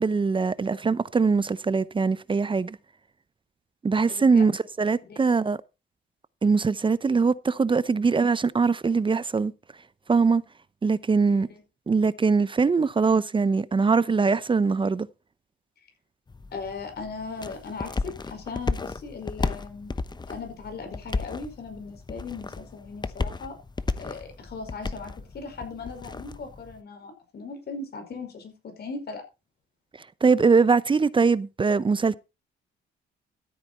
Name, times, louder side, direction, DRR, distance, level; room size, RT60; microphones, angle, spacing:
voice 1, 0.0-2.8 3.8-5.6 6.4-9.5 10.1-10.4 10.8-11.5 11.9-15.1 30.2-32.1, right 4 dB, 25° right, 0.7 m, -22 dB
voice 2, 4.1-4.4 5.1-5.3 11.3-11.6 16.5-19.9 20.3-23.6 24.0-29.2, left 4 dB, 55° left, 5.2 m, -38 dB
sound 1, 16.3-26.8, left 3 dB, 20° left, 0.9 m, -34 dB
13.5 x 8.2 x 4.3 m
cardioid pair, 90°, 20 cm